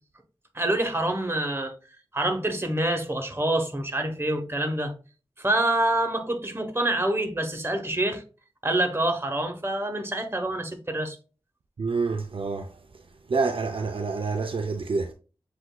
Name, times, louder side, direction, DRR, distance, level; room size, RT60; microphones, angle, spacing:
voice 1, 0.5-1.7 2.1-4.9 5.4-8.2 8.6-11.2, right 1 dB, 25° right, 1.0 m, -26 dB
voice 2, 11.8-12.7 13.3-15.1, right 4 dB, 60° right, 0.5 m, -27 dB
7.8 x 2.6 x 2.3 m
cardioid pair, 50°, 10 cm